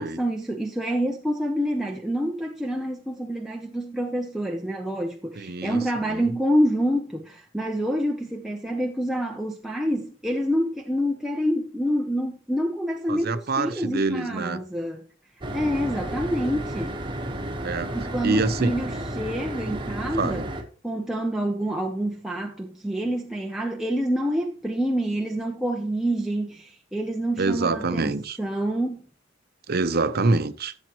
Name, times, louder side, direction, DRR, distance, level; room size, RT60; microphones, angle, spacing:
voice 1, 0.0-15.0 15.5-17.0 17.9-20.4 20.8-29.0, equal, ahead, 0.7 m, -27 dB
voice 2, 5.4-5.8 6.1-6.3 13.1-14.6 17.6-17.9 18.2-18.7 20.2-20.5 27.4-28.4 29.7-30.7, right 3 dB, 55° right, 0.8 m, -25 dB
sound 1, 15.4-20.6, right 1 dB, 25° right, 1.3 m, -32 dB
15.0 x 7.1 x 3.0 m
head